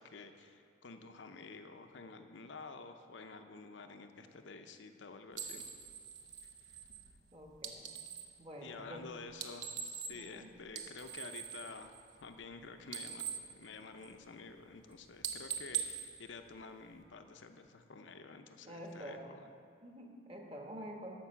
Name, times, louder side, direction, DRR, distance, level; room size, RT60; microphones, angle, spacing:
voice 1, 0.0-5.6 6.7-6.8 8.6-11.9 12.2-19.4, left 4 dB, 75° left, 7 dB, 0.7 m, -50 dB
sound 1, 5.3-8.4 9.3-10.4 10.7-12.5 12.8-14.4 14.7-14.9 15.2-17.0, right 8 dB, 80° right, 0.8 m, -43 dB
voice 2, 7.3-7.9 8.4-9.1 10.1-10.5 18.6-19.3 19.8-21.2, equal, 30° right, 1 dB, 1.2 m, -48 dB
12.0 x 5.4 x 7.0 m, 2.3 s
head